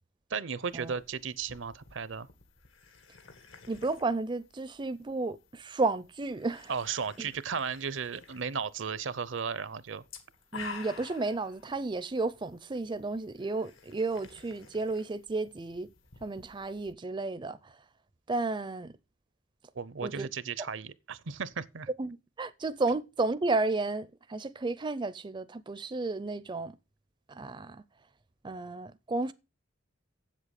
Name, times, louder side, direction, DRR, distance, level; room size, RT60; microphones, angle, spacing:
voice 1, 0.3-2.3 6.7-10.0 19.8-21.9, right 6 dB, 70° right, 0.7 m, -35 dB
sound 1, 0.6-16.9, left 5 dB, 80° left, 1.9 m, -52 dB
voice 2, 3.7-6.7 7.2-7.3 10.5-15.9 16.2-17.8 18.3-18.9 20.0-20.3 22.0-26.7 27.3-27.8 28.4-29.3, right 3 dB, 25° right, 0.5 m, -32 dB
7.9 x 7.6 x 6.4 m
head